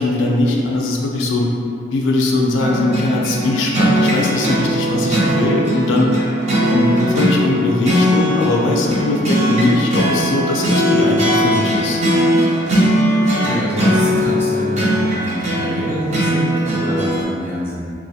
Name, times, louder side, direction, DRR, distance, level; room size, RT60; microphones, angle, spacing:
voice 1, 0.0-1.5 1.9-6.1 6.7-12.0, left 2 dB, 80° left, -1 dB, 0.3 m, -19 dB
sound 1, 2.6-17.2, equal, 40° right, 0.5 m, -18 dB
voice 2, 13.4-17.9, equal, 15° left, -8 dB, 0.5 m, -25 dB
2.3 x 2.0 x 2.7 m, 2.3 s
head